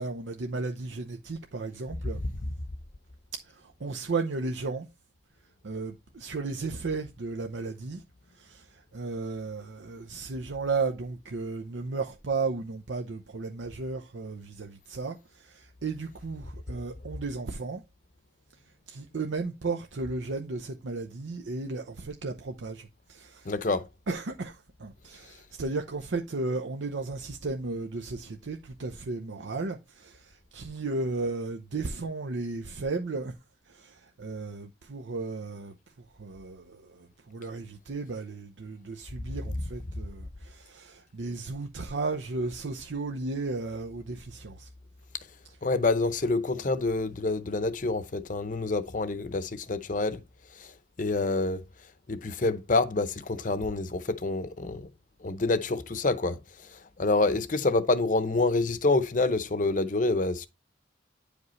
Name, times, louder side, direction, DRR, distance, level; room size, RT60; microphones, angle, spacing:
voice 1, 0.0-2.2 3.4-4.9 5.6-8.0 8.3-17.8 18.9-23.5 24.1-33.3 33.7-35.8 36.2-44.7, right 3 dB, 85° right, 0.7 m, -34 dB
voice 2, 23.4-23.9 45.6-50.2 50.6-50.7 51.0-51.6 52.1-54.9 55.2-56.4 56.7-60.5, left 3 dB, 45° left, 0.7 m, -27 dB
9.5 x 5.1 x 3.1 m
head